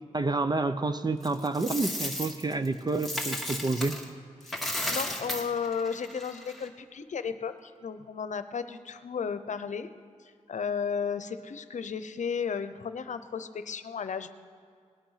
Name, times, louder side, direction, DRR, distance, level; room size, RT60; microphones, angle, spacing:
voice 1, 0.1-4.0, right 3 dB, 35° right, 10 dB, 0.7 m, -29 dB
Coin (dropping), 1.2-4.1 4.4-6.7, left 1 dB, ahead, 2.1 m, -34 dB
voice 2, 4.4-9.9 10.2-14.3, left 6 dB, 75° left, 11 dB, 0.8 m, -34 dB
19.0 x 8.8 x 5.7 m, 2.2 s
cardioid pair, 65°, 13 cm